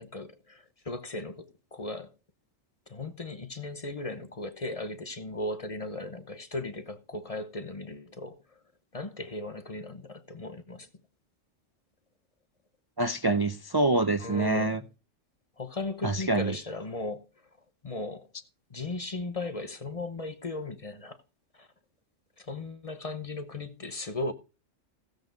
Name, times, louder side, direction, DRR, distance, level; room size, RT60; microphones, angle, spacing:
voice 1, 0.0-2.1 2.9-8.4 8.9-10.9 14.2-14.8 15.6-17.2 17.8-18.3 18.7-21.2 21.6-21.7 22.4-24.3, left 2 dB, 30° left, 0.9 m, -37 dB
voice 2, 13.0-14.8 16.0-16.6, right 2 dB, 30° right, 0.4 m, -26 dB
15.5 x 7.9 x 3.9 m
omnidirectional pair, 1.3 m